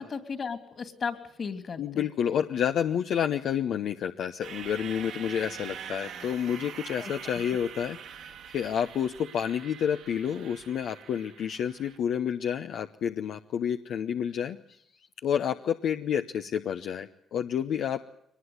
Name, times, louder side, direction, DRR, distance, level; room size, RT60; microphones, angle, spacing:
voice 1, 0.0-2.1 7.0-7.2, left 5 dB, 45° left, 9 dB, 2.8 m, -35 dB
voice 2, 1.8-14.8 15.2-18.1, left 8 dB, 70° left, 6 dB, 0.9 m, -29 dB
sound 1, 4.4-12.0, right 8 dB, 80° right, 2.7 m, -44 dB
23.0 x 20.0 x 9.7 m, 0.74 s
cardioid pair, 90°, 0 cm